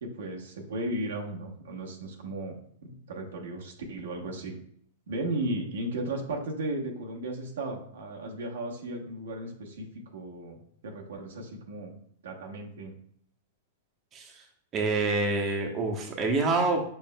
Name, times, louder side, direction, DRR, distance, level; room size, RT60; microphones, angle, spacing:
voice 1, 0.0-4.5 5.1-11.9 12.2-12.9, right 1 dB, 70° right, 1 dB, 0.9 m, -35 dB
voice 2, 14.7-16.9, right 3 dB, 30° right, 1 dB, 0.8 m, -27 dB
5.5 x 4.1 x 2.2 m, 0.65 s
hypercardioid pair, 105°, 0 cm